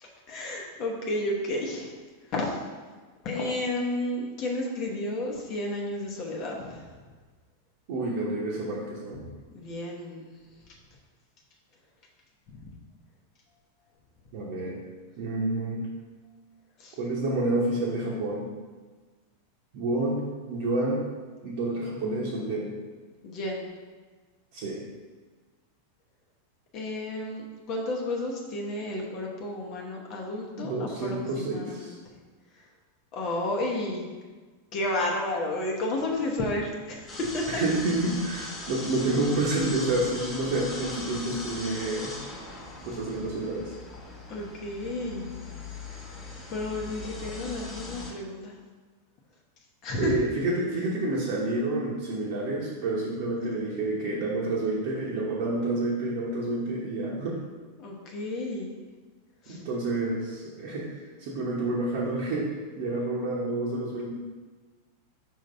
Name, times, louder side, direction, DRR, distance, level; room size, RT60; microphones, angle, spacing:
voice 1, 0.0-2.0 2.3-2.6 3.2-6.9 9.5-10.4 12.5-12.7 16.8-17.0 23.2-23.7 26.7-32.1 33.1-34.1 34.7-37.6 44.3-45.3 45.9-46.0 46.5-48.6 49.8-50.2 57.8-58.7 59.4-59.6, left 1 dB, 40° left, -1 dB, 1.0 m, -32 dB
voice 2, 7.9-9.2 14.3-14.8 15.2-15.9 17.0-18.5 19.7-21.0 21.4-22.8 24.5-24.8 30.6-32.0 37.6-42.1 42.8-43.7 50.0-57.4 59.5-64.1, right 2 dB, 50° right, -5 dB, 1.1 m, -29 dB
sound 1, 37.1-48.1, left 2 dB, 25° left, 1.5 m, -40 dB
5.3 x 3.8 x 5.3 m, 1.4 s
figure-of-eight pair, 90°, 0 cm